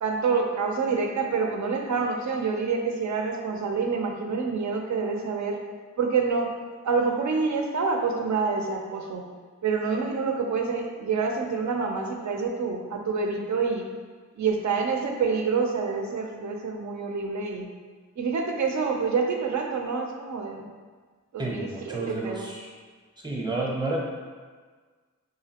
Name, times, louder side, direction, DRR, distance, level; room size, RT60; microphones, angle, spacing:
voice 1, 0.0-5.6 6.0-6.5 6.8-9.2 9.6-13.9 14.4-17.7 18.2-20.7 21.3-22.5, right 5 dB, 70° right, 2 dB, 0.6 m, -27 dB
voice 2, 21.4-22.7 23.2-24.0, right 2 dB, 15° right, -2 dB, 0.7 m, -30 dB
4.8 x 2.7 x 2.8 m, 1.5 s
wide cardioid pair, 100°, 30 cm